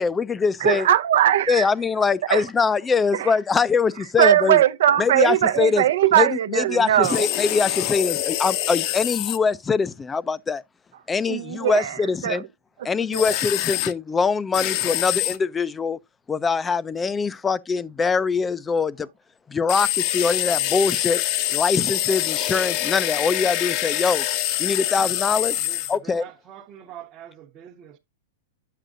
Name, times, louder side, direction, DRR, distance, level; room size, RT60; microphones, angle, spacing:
voice 1, 0.0-0.9 1.5-4.6 5.0-5.8 6.2-10.6 11.1-12.4 12.8-16.0 16.3-19.1 19.5-21.2 21.5-24.2 24.6-25.6 25.9-26.2, left 5 dB, 15° left, 0.5 m, -23 dB
voice 2, 0.6-1.7 2.2-2.5 3.1-3.3 4.2-7.3 11.3-12.4 12.8-13.4, right 12 dB, 70° right, 0.7 m, -20 dB
sound 1, 7.0-9.4 13.1-13.9 14.5-15.4 19.7-26.0, left 14 dB, 45° left, 0.7 m, -25 dB
voice 3, 25.6-28.0, right 10 dB, 30° right, 1.0 m, -44 dB
8.9 x 7.6 x 2.5 m
hypercardioid pair, 140°, 0 cm